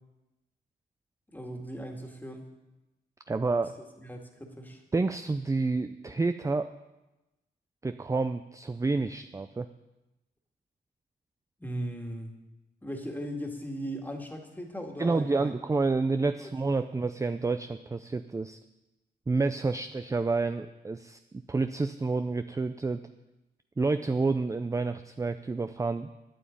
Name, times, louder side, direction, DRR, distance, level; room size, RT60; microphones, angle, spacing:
voice 1, 1.3-2.4 4.0-4.8 11.6-12.3 12.8-15.6 16.4-16.5 16.9-17.0, equal, 10° left, 2 dB, 2.0 m, -38 dB
voice 2, 3.3-3.7 4.9-6.7 7.8-9.7 15.0-18.6 19.3-23.0 23.8-26.1, right 3 dB, 15° right, 10 dB, 0.4 m, -29 dB
9.2 x 8.9 x 8.5 m, 1.0 s
wide cardioid pair, 100°, 18 cm